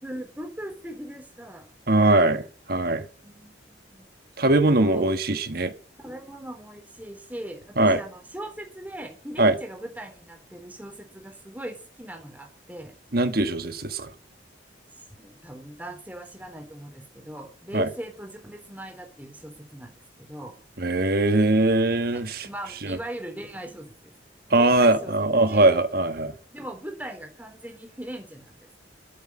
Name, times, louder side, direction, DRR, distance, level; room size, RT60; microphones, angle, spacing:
voice 1, 0.0-1.7 3.2-4.1 4.7-5.0 6.0-13.0 15.1-20.5 22.1-24.1 24.5-25.1 25.4-25.7 26.5-28.7, right 1 dB, 10° right, 3.7 m, -40 dB
voice 2, 1.9-2.4 2.7-3.0 4.4-5.7 7.8-8.0 9.4-9.5 13.1-14.1 17.7-17.9 20.8-22.5 22.8-23.0 24.5-26.3, right 2 dB, 55° right, 1.4 m, -21 dB
12.5 x 8.2 x 8.7 m
head